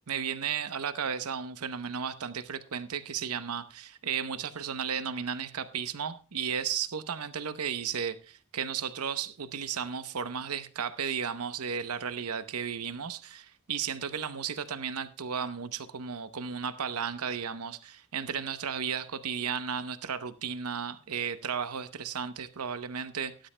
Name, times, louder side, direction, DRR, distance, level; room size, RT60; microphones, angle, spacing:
voice 1, 0.1-23.5, right 7 dB, 90° right, 0.8 m, -34 dB
18.0 x 11.5 x 2.2 m
head